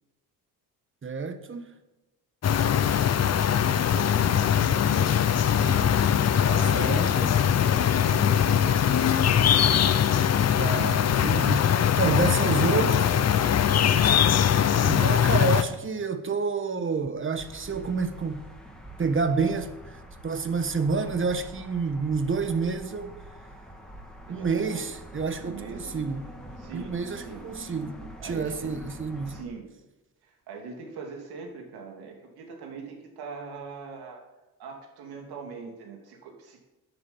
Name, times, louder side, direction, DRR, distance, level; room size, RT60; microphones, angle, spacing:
voice 1, 1.0-1.7 6.7-7.4 10.6-13.1 14.7-18.5 19.0-23.1 24.3-26.3 26.7-28.0 28.2-29.4, right 4 dB, 35° right, 1.2 m, -29 dB
sound 1, 2.4-15.6, left 9 dB, 45° left, 0.7 m, -22 dB
voice 2, 2.6-3.0 3.9-5.8 6.3-6.9 7.6-9.4 24.3-24.9 25.4-25.9 26.6-27.4 28.2-28.8 29.3-29.7 30.2-34.2 34.6-36.6, right 5 dB, 85° right, 2.7 m, -42 dB
sound 2, 17.4-29.4, equal, ahead, 2.0 m, -45 dB
10.5 x 7.6 x 7.2 m
cardioid pair, 90°, 37 cm